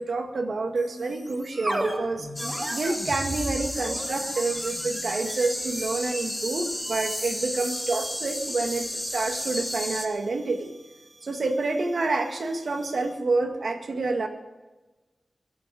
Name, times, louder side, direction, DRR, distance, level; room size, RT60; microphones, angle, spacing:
voice 1, 0.0-2.3 2.7-10.7 11.2-14.3, right 3 dB, 70° right, 5 dB, 2.1 m, -28 dB
sound 1, 0.8-13.2, right 1 dB, 25° right, 2.4 m, -38 dB
sound 2, 2.4-10.1, left 1 dB, 5° left, 2.2 m, -32 dB
22.0 x 11.5 x 5.1 m, 1.1 s
wide cardioid pair, 95°, 0 cm